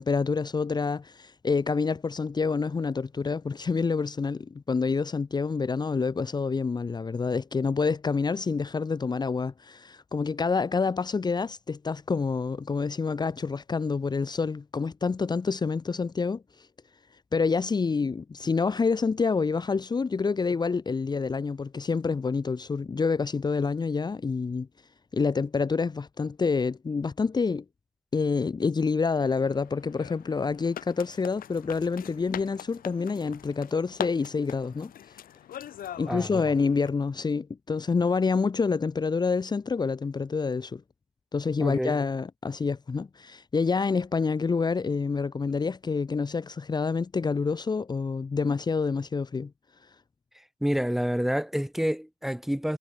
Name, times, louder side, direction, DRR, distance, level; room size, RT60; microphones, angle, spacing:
voice 1, 0.0-16.7 17.3-24.7 25.1-27.6 28.1-34.9 36.0-40.8 41.3-49.5 49.8-49.9, left 4 dB, 25° left, 2.1 m, -27 dB
sound 1, 29.1-36.9, left 11 dB, 60° left, 5.0 m, -42 dB
voice 2, 36.1-36.4 41.6-42.0 50.4-52.8, equal, ahead, 3.7 m, -28 dB
cardioid pair, 110°, 17 cm